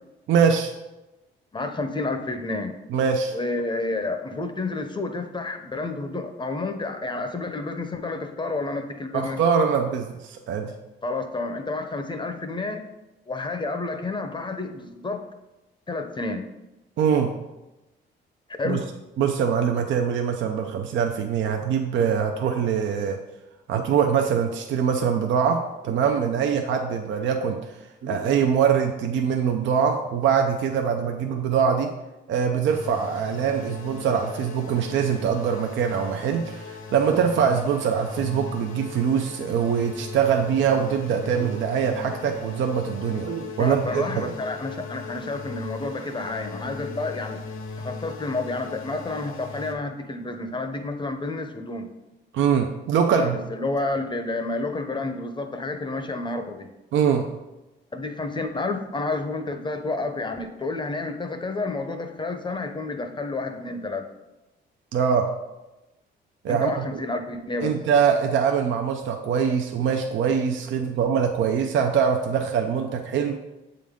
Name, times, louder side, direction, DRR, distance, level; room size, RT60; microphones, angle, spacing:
voice 1, 0.3-0.7 2.9-3.4 9.1-10.7 17.0-17.3 18.6-18.8 19.2-23.2 23.7-27.7 28.0-31.9 32.3-44.3 52.3-53.4 56.9-57.3 64.9-65.3 66.4-67.0 67.6-73.4, right 7 dB, 70° right, 4 dB, 0.5 m, -23 dB
voice 2, 1.5-2.7 3.3-9.4 11.0-12.8 13.3-15.2 15.9-16.5 18.6-18.8 43.6-47.4 47.8-51.9 53.1-56.7 57.9-64.0 66.5-67.8, left 3 dB, 25° left, 6 dB, 0.6 m, -30 dB
sound 1, 32.7-49.7, left 4 dB, 80° left, 0.9 m, -38 dB
7.5 x 3.8 x 3.6 m, 1.0 s
cardioid pair, 90°, 20 cm